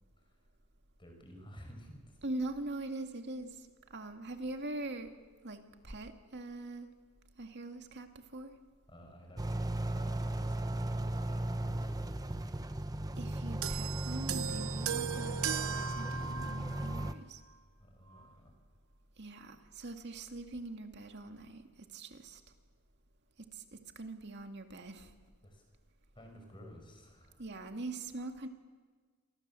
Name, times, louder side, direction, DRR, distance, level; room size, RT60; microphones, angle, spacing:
voice 1, 1.0-2.2 8.9-12.1 17.8-18.5 25.4-25.6 26.1-27.4, equal, 20° left, 3 dB, 6.1 m, -53 dB
voice 2, 2.2-5.1 5.4-6.9 7.4-8.5 13.2-17.4 19.2-21.6 21.9-22.4 23.5-25.1 27.4-28.5, right 2 dB, 50° right, 5 dB, 2.2 m, -42 dB
sound 1, 9.4-17.1, right 1 dB, 15° right, 0.9 m, -36 dB
sound 2, 13.6-17.2 18.1-18.3, right 8 dB, 75° right, 1.0 m, -38 dB
28.0 x 25.0 x 7.7 m, 1.5 s
head